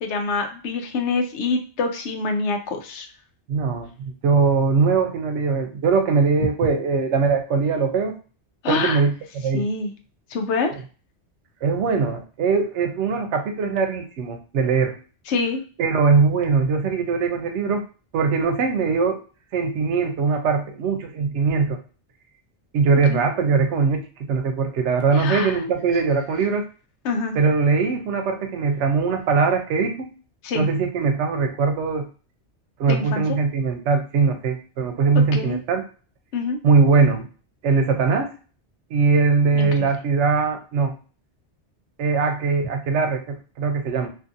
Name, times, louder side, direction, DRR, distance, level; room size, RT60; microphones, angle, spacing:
voice 1, 0.0-3.1 8.6-9.0 9.5-9.9 10.3-10.7 15.3-15.6 23.1-23.2 25.2-25.6 27.0-27.4 30.4-30.7 32.9-33.2 35.1-35.6 36.3-36.6 39.5-39.9, left 4 dB, 80° left, 5 dB, 0.9 m, -25 dB
voice 2, 3.5-8.1 8.7-9.1 9.4-9.7 11.6-15.0 15.8-17.9 18.1-19.2 19.5-21.8 22.7-26.6 27.3-30.1 30.5-32.1 32.8-35.8 36.6-37.3 37.6-38.4 38.9-40.9 42.0-44.1, right 5 dB, 85° right, 5 dB, 0.9 m, -21 dB
2.6 x 2.5 x 2.6 m, 0.37 s
omnidirectional pair, 1.2 m